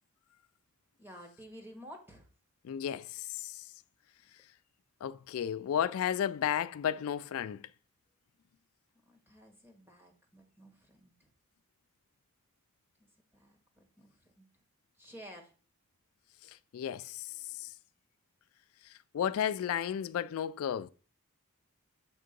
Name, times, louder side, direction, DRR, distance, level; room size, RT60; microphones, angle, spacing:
voice 1, 1.0-2.3 9.1-11.3 13.0-14.4 15.0-15.5, equal, 10° right, 1.4 m, -53 dB
voice 2, 2.6-3.7 5.0-7.7 16.5-17.7 19.1-20.9, left 9 dB, 70° left, 0.3 m, -33 dB
7.9 x 3.6 x 5.2 m
head